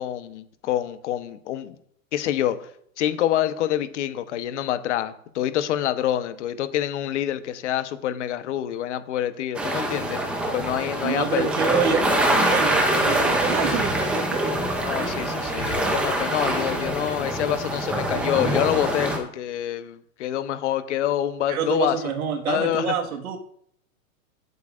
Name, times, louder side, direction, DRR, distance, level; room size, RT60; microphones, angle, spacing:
voice 1, 0.0-1.7 2.1-2.7 3.0-10.2 10.5-11.5 14.8-22.0 22.5-22.9, left 11 dB, 55° left, 11 dB, 1.0 m, -26 dB
sound 1, 9.5-19.2, right 1 dB, 5° right, 0.5 m, -24 dB
voice 2, 11.0-14.5 21.5-23.4, right 7 dB, 85° right, 4 dB, 1.7 m, -27 dB
16.5 x 8.1 x 2.5 m, 0.66 s
supercardioid pair, 155°, 42 cm